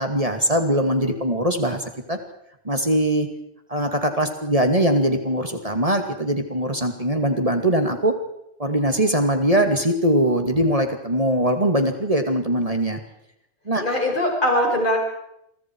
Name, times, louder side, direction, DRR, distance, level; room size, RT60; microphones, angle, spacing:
voice 1, 0.0-2.2 2.6-3.3 3.7-8.1 8.6-13.0 13.7-13.8, right 1 dB, 30° right, 5 dB, 2.5 m, -21 dB
voice 2, 13.8-15.0, left 1 dB, 40° left, 1 dB, 5.6 m, -21 dB
29.5 x 23.0 x 4.7 m, 0.77 s
omnidirectional pair, 1.2 m